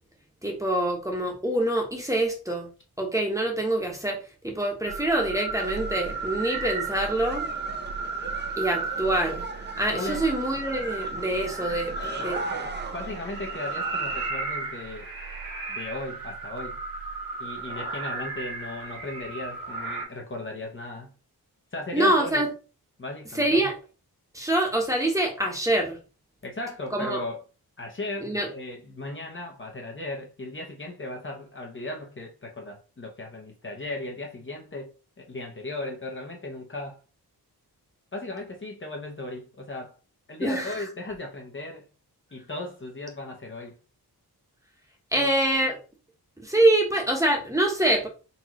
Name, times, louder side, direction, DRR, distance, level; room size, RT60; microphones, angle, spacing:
voice 1, 0.4-2.7 3.0-4.2 4.4-7.5 8.6-9.4 9.8-11.9 12.2-12.4 21.9-22.5 23.3-23.8 24.3-26.0 26.9-27.2 28.2-28.5 40.4-40.8 45.1-45.8 46.4-48.1, right 1 dB, 10° right, 1.2 m, -25 dB
sound 1, 4.9-20.0, right 3 dB, 60° right, 1.9 m, -34 dB
sound 2, 5.6-14.3, right 3 dB, 25° right, 0.6 m, -41 dB
voice 2, 9.9-10.3 11.9-15.1 15.7-16.8 17.4-21.1 21.7-22.4 23.0-23.5 26.4-27.4 27.8-37.0 38.1-39.9 40.3-41.9 42.3-43.8 45.2-45.3, left 2 dB, 30° left, 0.9 m, -36 dB
4.2 x 3.6 x 3.0 m
wide cardioid pair, 115°, 38 cm